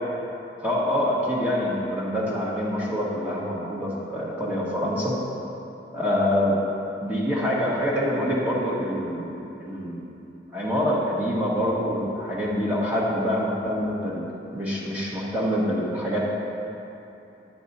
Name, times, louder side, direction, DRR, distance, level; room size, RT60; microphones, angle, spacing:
voice 1, 0.6-5.2 5.9-6.6 7.0-10.1 10.5-14.2 14.5-16.3, equal, 10° right, -6 dB, 1.4 m, -25 dB
9.6 x 8.2 x 4.2 m, 2.9 s
head